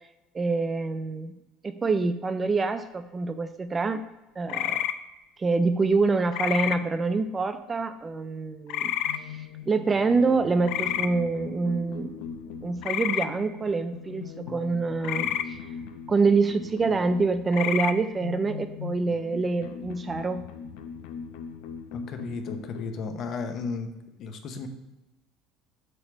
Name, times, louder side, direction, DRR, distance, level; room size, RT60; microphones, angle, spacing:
voice 1, 0.3-1.3 1.6-4.0 4.4-4.8 5.4-8.9 9.3-12.2 12.6-15.6 16.1-20.5, right 4 dB, 15° right, 10 dB, 0.3 m, -26 dB
sound 1, 4.5-4.9 6.3-6.8 8.7-9.2 10.6-11.1 12.8-13.3 15.0-15.5 17.5-17.9, left 12 dB, 60° left, 0.4 m, -28 dB
sound 2, 9.0-23.0, left 6 dB, 90° left, 0.8 m, -40 dB
voice 2, 21.9-23.9 24.2-24.7, left 4 dB, 40° left, 6 dB, 0.8 m, -34 dB
7.9 x 3.3 x 6.1 m, 1.0 s
cardioid pair, 160°, 0 cm